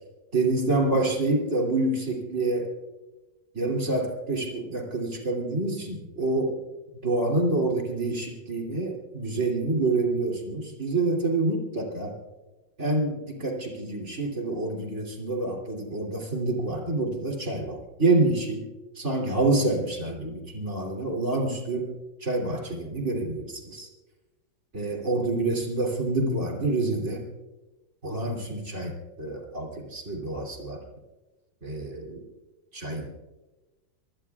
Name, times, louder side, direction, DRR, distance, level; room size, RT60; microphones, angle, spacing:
voice 1, 0.3-2.7 3.5-6.6 7.0-12.1 12.8-18.6 18.9-21.9 22.2-23.9 24.7-27.2 28.0-28.9 29.2-30.8 31.6-32.2 32.7-33.1, right 2 dB, 35° right, 0 dB, 3.3 m, -27 dB
25.5 x 19.5 x 2.4 m, 1.1 s
omnidirectional pair, 2.2 m